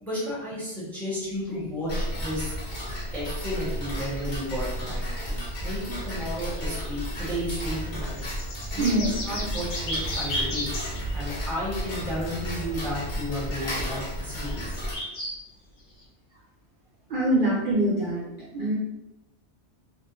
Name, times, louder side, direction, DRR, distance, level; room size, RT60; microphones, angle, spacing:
voice 1, 0.0-2.5 3.1-8.2 8.7-10.7 11.1-14.8, equal, ahead, -7 dB, 0.7 m, -33 dB
sound 1, 1.2-1.6 2.5-2.6 4.8-4.9 5.1-5.2 5.5-11.5 13.1-13.2 14.4-15.4 16.0-16.1, left 1 dB, 75° left, 1.0 m, -35 dB
Tick-tock, 1.9-14.9, equal, 50° left, 0.8 m, -33 dB
voice 2, 8.8-9.5 14.3-14.5 17.1-18.2 18.5-18.7, right 1 dB, 55° right, -6 dB, 0.6 m, -24 dB
2.4 x 2.0 x 2.9 m, 0.92 s
omnidirectional pair, 1.2 m